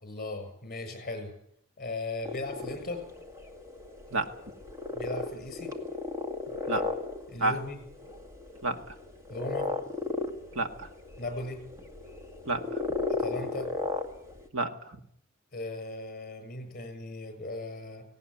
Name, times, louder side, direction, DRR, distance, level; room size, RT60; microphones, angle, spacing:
voice 1, 0.0-1.3 1.8-3.0 4.9-5.7 7.3-7.8 9.3-9.7 11.2-11.6 13.2-13.7 15.5-18.0, left 2 dB, 40° left, 7 dB, 7.2 m, -37 dB
sound 1, 2.3-14.5, left 3 dB, 15° right, 2.1 m, -36 dB
voice 2, 8.6-8.9 10.5-10.9 12.4-12.8 14.5-15.0, right 2 dB, 70° right, 7 dB, 1.8 m, -30 dB
18.5 x 18.0 x 9.9 m, 0.70 s
head